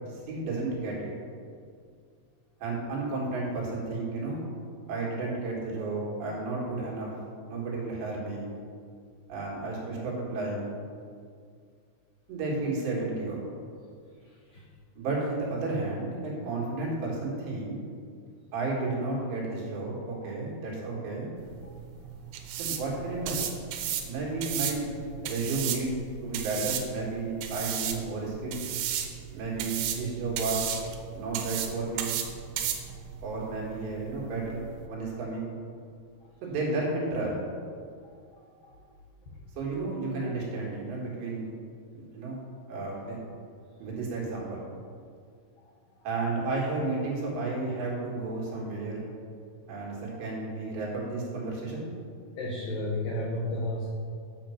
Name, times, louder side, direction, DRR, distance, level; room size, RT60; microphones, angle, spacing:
voice 1, 0.1-1.1 2.6-4.4 4.9-7.1 7.4-8.5 9.3-10.7 12.3-13.4 15.0-17.8 18.5-21.3 22.6-23.4 24.0-24.9 25.2-26.0 26.2-28.7 29.3-30.7 31.1-32.1 33.2-35.5 36.4-37.4 39.6-41.5 41.9-42.4 42.7-43.2 43.8-44.6 46.0-49.1 49.7-51.9, right 3 dB, 65° right, -4 dB, 4.1 m, -32 dB
sound 1, 21.4-34.9, right 9 dB, 85° right, 3.3 m, -35 dB
voice 2, 38.0-38.7 52.4-53.9, left 1 dB, 75° left, -3 dB, 2.1 m, -33 dB
9.8 x 7.1 x 5.9 m, 2.2 s
omnidirectional pair, 5.7 m